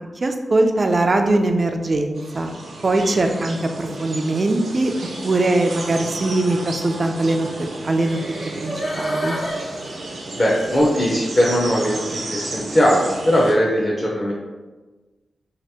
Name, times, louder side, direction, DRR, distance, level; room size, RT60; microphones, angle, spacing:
voice 1, 0.2-2.5 2.8-4.9 5.2-8.2 8.6-9.4, right 2 dB, 35° right, 5 dB, 0.3 m, -21 dB
sound 1, 2.2-13.5, right 2 dB, 75° right, 0.6 m, -33 dB
sound 2, 8.1-11.1 11.6-11.7, right 1 dB, 40° left, 0.9 m, -29 dB
voice 2, 10.4-14.3, equal, 25° left, -4 dB, 0.5 m, -19 dB
3.0 x 2.8 x 3.3 m, 1.2 s
wide cardioid pair, 140°, 0 cm